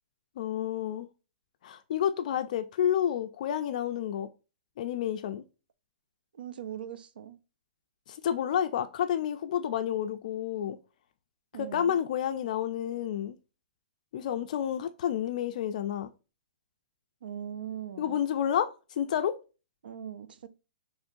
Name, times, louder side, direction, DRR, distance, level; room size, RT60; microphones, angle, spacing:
voice 1, 0.4-1.1 1.6-4.3 4.8-5.4 8.1-10.8 11.6-13.4 14.1-16.1 18.0-19.3, left 9 dB, 50° left, 0.3 m, -30 dB
voice 2, 6.3-7.4 11.5-12.0 17.2-18.2 19.8-20.5, right 9 dB, 85° right, 0.4 m, -40 dB
5.1 x 3.0 x 2.5 m
hypercardioid pair, 155°, 5 cm